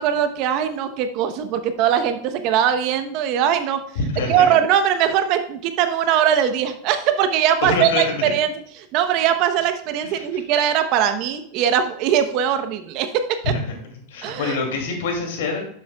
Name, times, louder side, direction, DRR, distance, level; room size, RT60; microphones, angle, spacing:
voice 1, 0.0-3.8 4.3-8.5 8.9-13.1 13.4-13.5 14.2-14.6, right 9 dB, 55° right, 8 dB, 0.9 m, -20 dB
voice 2, 3.9-4.5 7.6-8.2 10.0-10.2 13.4-13.6 14.1-15.6, left 3 dB, 75° left, 2 dB, 2.5 m, -25 dB
11.0 x 7.3 x 2.3 m, 0.65 s
hypercardioid pair, 110°, 0 cm